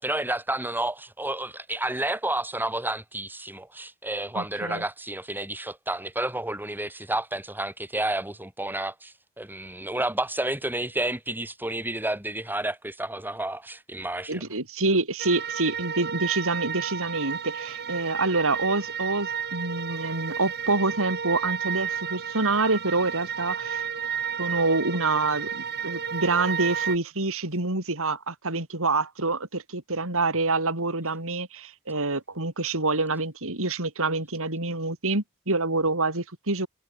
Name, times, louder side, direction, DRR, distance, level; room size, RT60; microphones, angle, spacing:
voice 1, 0.0-14.4, right 1 dB, 10° right, 7.9 m, -30 dB
voice 2, 4.3-4.8 14.3-23.8 24.4-36.7, right 3 dB, 65° right, 5.2 m, -27 dB
sound 1, 15.2-27.0, right 7 dB, 50° right, 4.9 m, -32 dB
head